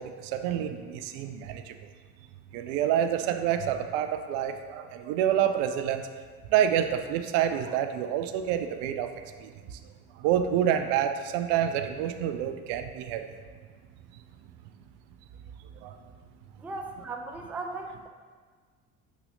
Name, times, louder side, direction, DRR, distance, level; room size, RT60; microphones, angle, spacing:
voice 1, 0.0-1.8 2.5-6.1 6.5-9.1 9.4-9.8 10.1-13.2 15.8-16.0, right 10 dB, 55° right, 8 dB, 0.5 m, -28 dB
voice 2, 16.6-18.1, right 3 dB, 5° right, 2 dB, 0.4 m, -37 dB
7.2 x 5.5 x 2.7 m, 1.5 s
figure-of-eight pair, 60°, 46 cm